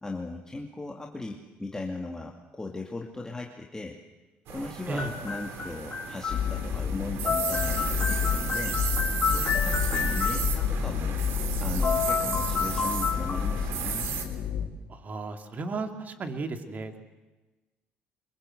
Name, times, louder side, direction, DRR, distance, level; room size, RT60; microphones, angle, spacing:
voice 1, 0.0-4.0 4.5-11.2 11.6-14.1, left 2 dB, 15° left, 1 dB, 2.4 m, -38 dB
sound 1, 4.5-14.3, right 8 dB, 75° right, 3.4 m, -34 dB
sound 2, 5.0-6.8 7.0-10.6 11.5-11.6 11.8-14.0, left 7 dB, 40° left, 3.7 m, -31 dB
sound 3, 6.3-14.7, left 7 dB, 70° left, 3.3 m, -30 dB
voice 2, 14.9-17.0, right 3 dB, 40° right, 6 dB, 3.0 m, -34 dB
25.0 x 22.5 x 7.9 m, 1.2 s
supercardioid pair, 80°, 4 cm